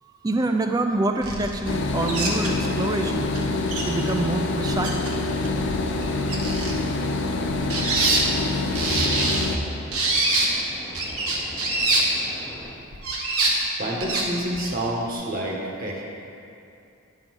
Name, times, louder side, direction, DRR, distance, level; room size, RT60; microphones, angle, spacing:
voice 1, 0.2-3.3 3.8-5.1, right 2 dB, 15° right, 5 dB, 0.4 m, -26 dB
sound 1, 1.2-1.7 2.1-2.5 3.1-3.2 3.3-3.4 3.7-4.1 4.4-5.1 5.4-6.7 7.5-8.2 8.7-9.5 9.9-10.5 10.9-12.0 12.9-13.5 14.0-14.2 14.5-14.7, right 2 dB, 85° right, 1.3 m, -24 dB
sound 2, 1.6-9.6, left 2 dB, 55° left, 0.5 m, -26 dB
sound 3, 1.7-12.8, left 1 dB, 15° left, 0.7 m, -43 dB
voice 2, 13.8-16.0, right 1 dB, 40° right, -2 dB, 1.1 m, -28 dB
10.0 x 3.8 x 6.1 m, 2.6 s
head